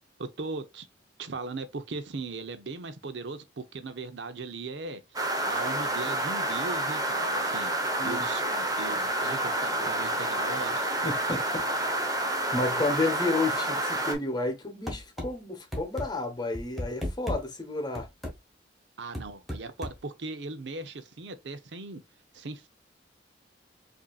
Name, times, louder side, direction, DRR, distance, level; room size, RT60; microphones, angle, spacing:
voice 1, 0.2-0.9 1.2-5.0 5.5-7.8 8.0-11.1 19.0-22.0 22.3-22.7, right 3 dB, 75° right, 0.7 m, -38 dB
sound 1, 5.1-14.1, right 1 dB, 20° right, 0.8 m, -29 dB
voice 2, 11.0-11.6 12.5-18.1, left 2 dB, 25° left, 0.9 m, -31 dB
sound 2, 14.9-15.3 15.7-16.1 16.5-17.4 18.0-18.4 19.1-20.0, left 1 dB, ahead, 1.3 m, -33 dB
5.2 x 2.8 x 2.3 m
head